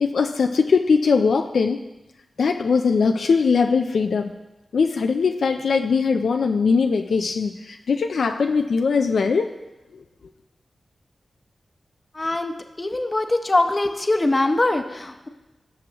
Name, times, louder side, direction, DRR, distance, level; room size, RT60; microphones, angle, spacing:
voice 1, 0.0-1.8 2.4-4.3 4.7-9.5, left 5 dB, 85° left, 5 dB, 0.4 m, -20 dB
voice 2, 12.1-15.3, left 2 dB, 35° left, 6 dB, 0.9 m, -22 dB
17.0 x 6.1 x 3.0 m, 1.0 s
cardioid pair, 55°, 0 cm